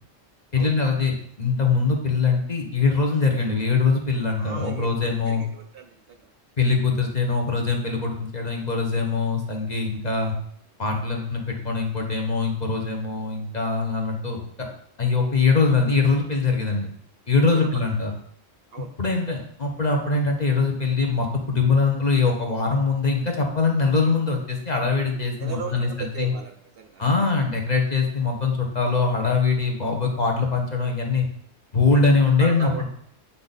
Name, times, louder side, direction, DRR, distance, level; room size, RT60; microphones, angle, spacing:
voice 1, 0.5-5.4 6.6-10.3 10.8-14.4 15.0-16.9 17.3-18.1 19.0-26.3 27.0-31.3 31.7-32.9, left 4 dB, 35° left, 2 dB, 1.0 m, -22 dB
voice 2, 4.4-6.3 17.5-17.7 18.7-18.9 25.1-27.4 32.4-32.8, right 7 dB, 60° right, 5 dB, 0.7 m, -38 dB
8.4 x 3.8 x 4.0 m, 0.65 s
omnidirectional pair, 1.3 m